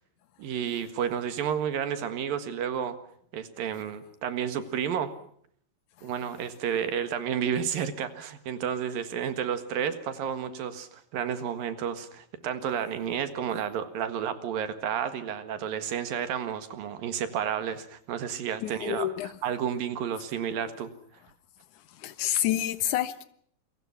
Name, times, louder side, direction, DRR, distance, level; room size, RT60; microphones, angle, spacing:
voice 1, 0.4-3.0 3.3-5.1 6.0-19.1 19.4-20.9, right 8 dB, 75° right, 3.4 m, -31 dB
voice 2, 18.6-19.3 21.8-23.2, left 12 dB, 65° left, 2.5 m, -29 dB
28.5 x 23.5 x 5.9 m
omnidirectional pair, 4.2 m